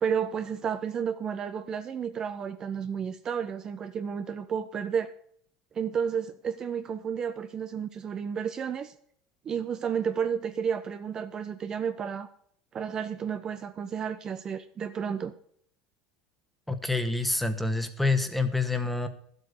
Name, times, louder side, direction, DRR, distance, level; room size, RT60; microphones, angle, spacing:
voice 1, 0.0-5.1 5.7-8.9 9.4-12.3 12.7-15.3, right 7 dB, 35° right, 1.0 m, -31 dB
voice 2, 16.7-19.1, left 3 dB, 5° left, 1.7 m, -27 dB
12.0 x 8.3 x 6.8 m
supercardioid pair, 105°, 2 cm